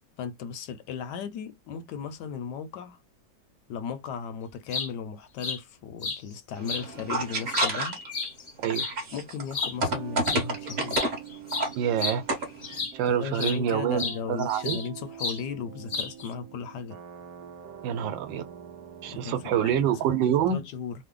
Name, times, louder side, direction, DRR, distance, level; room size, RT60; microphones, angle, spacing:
voice 1, 0.2-3.0 3.7-8.0 9.1-11.1 13.0-17.0 19.1-20.9, left 6 dB, 70° left, 1.1 m, -36 dB
sound 1, 4.5-4.9 5.4-5.6 6.0-6.2 6.7-6.8 7.3-8.9 9.5-9.8 10.2-10.4 10.7-13.0 13.4-13.6 14.0-14.9 15.2-15.4 15.9-16.3, left 4 dB, 50° left, 0.6 m, -32 dB
sound 2, 6.6-8.2 8.6-11.2 11.5-11.7 12.1-12.7, right 2 dB, 40° right, 1.1 m, -29 dB
sound 3, 9.8-20.0, right 9 dB, 65° right, 1.0 m, -44 dB
voice 2, 11.8-12.2 12.9-14.8 17.8-18.4 19.0-20.6, right 9 dB, 85° right, 1.4 m, -26 dB
3.2 x 2.1 x 3.6 m
omnidirectional pair, 2.0 m